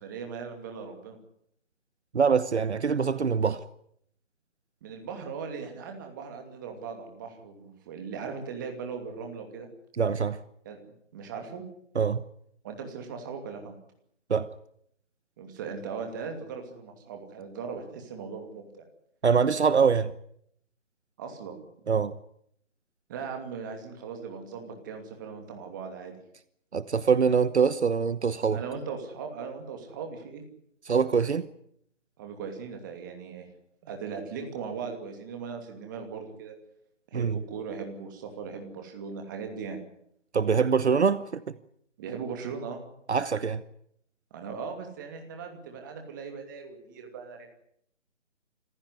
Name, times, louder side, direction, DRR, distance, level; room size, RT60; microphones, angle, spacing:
voice 1, 0.0-1.2 4.8-9.7 10.6-10.8 11.1-11.6 12.6-13.8 15.4-18.9 21.2-21.6 23.1-26.1 28.5-30.4 32.2-33.5 33.8-36.5 37.1-39.8 42.0-42.8 44.3-47.5, right 5 dB, 15° right, 2.6 m, -38 dB
voice 2, 2.1-3.6 10.0-10.4 11.9-12.2 14.3-14.5 19.2-20.1 21.9-22.1 26.7-28.6 30.9-31.5 37.1-37.4 40.3-41.4 43.1-43.6, right 6 dB, 60° right, 1.1 m, -24 dB
27.5 x 15.0 x 9.7 m
hypercardioid pair, 170°, 37 cm